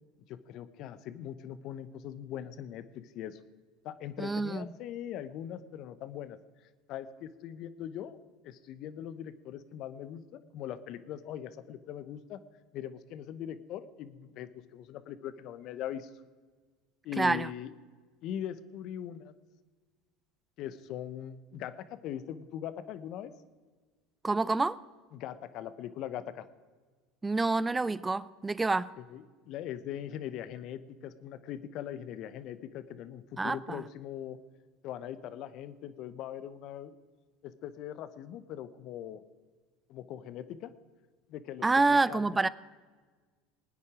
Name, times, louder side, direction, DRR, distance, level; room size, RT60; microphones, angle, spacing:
voice 1, 0.3-3.4 3.8-6.4 6.9-8.2 8.4-12.4 12.7-16.1 17.0-17.7 18.2-19.3 20.6-23.3 25.1-26.5 29.0-34.4 34.8-36.9 37.4-39.2 39.9-40.7 41.3-42.4, left 10 dB, 55° left, 14 dB, 0.9 m, -41 dB
voice 2, 4.2-4.7 17.2-17.5 24.2-24.8 27.2-28.9 33.4-33.8 41.6-42.5, right 3 dB, 15° right, 18 dB, 0.5 m, -27 dB
21.0 x 9.6 x 5.0 m, 1.4 s
hypercardioid pair, 90°, 0 cm